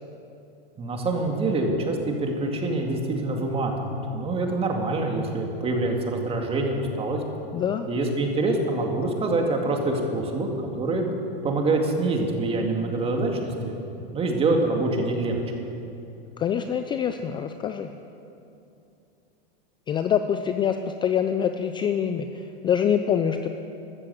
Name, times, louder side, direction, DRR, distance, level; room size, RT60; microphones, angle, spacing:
voice 1, 0.8-7.2 7.9-10.5 10.8-11.1 11.4-13.7 14.1-15.4, right 2 dB, 20° right, 2 dB, 2.2 m, -25 dB
voice 2, 7.5-7.9 16.4-17.9 19.9-20.8 21.0-23.5, left 8 dB, 15° left, 8 dB, 0.4 m, -25 dB
14.0 x 12.5 x 7.8 m, 2.7 s
supercardioid pair, 135°, 30 cm